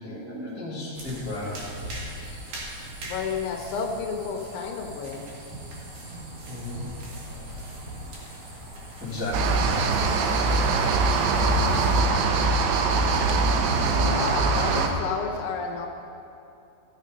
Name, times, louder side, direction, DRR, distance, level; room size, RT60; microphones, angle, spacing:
voice 1, 0.0-1.6 6.5-6.8 7.2-7.5 9.0-9.6, left 2 dB, 10° right, -9 dB, 0.9 m, -34 dB
sound 1, 0.9-12.0, right 1 dB, 55° right, 2.2 m, -39 dB
voice 2, 3.0-5.2 14.0-15.9, left 5 dB, 80° left, 3 dB, 3.0 m, -31 dB
sound 2, 9.3-14.9, right 3 dB, 80° right, 2.9 m, -22 dB
14.0 x 6.6 x 5.2 m, 2.7 s
omnidirectional pair, 5.6 m